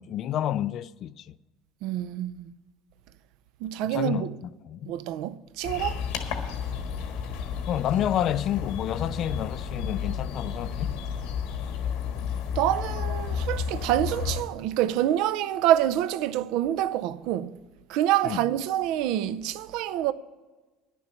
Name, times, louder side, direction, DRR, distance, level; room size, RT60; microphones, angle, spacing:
voice 1, 0.0-1.3 3.8-4.3 4.7-4.9 7.7-11.0 18.2-18.4, left 11 dB, 50° left, 0.3 m, -29 dB
voice 2, 1.8-2.5 3.6-4.4 4.9-6.0 12.6-17.6 17.9-20.1, right 12 dB, 70° right, 0.5 m, -26 dB
sound 1, 5.6-14.4, left 6 dB, 85° left, 1.5 m, -32 dB
10.5 x 6.9 x 8.3 m
supercardioid pair, 110°, 0 cm